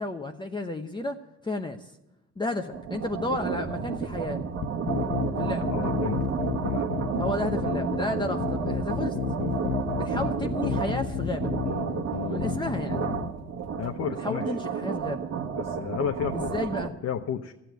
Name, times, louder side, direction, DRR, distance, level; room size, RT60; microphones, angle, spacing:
voice 1, 0.0-1.9 2.4-4.4 5.4-5.7 7.2-9.2 9.9-11.6 12.2-13.1 14.2-15.3 16.3-16.9, left 2 dB, 15° left, 3 dB, 0.9 m, -32 dB
sound 1, 2.7-16.9, right 6 dB, 60° right, 1.4 m, -31 dB
sound 2, 4.6-13.3, left 7 dB, 85° left, 1.2 m, -31 dB
voice 2, 5.7-6.2 6.7-6.9 13.8-14.4 15.6-16.6 17.0-17.5, left 8 dB, 55° left, 5 dB, 0.9 m, -32 dB
13.5 x 8.4 x 9.2 m, 0.90 s
cardioid pair, 90°, 30 cm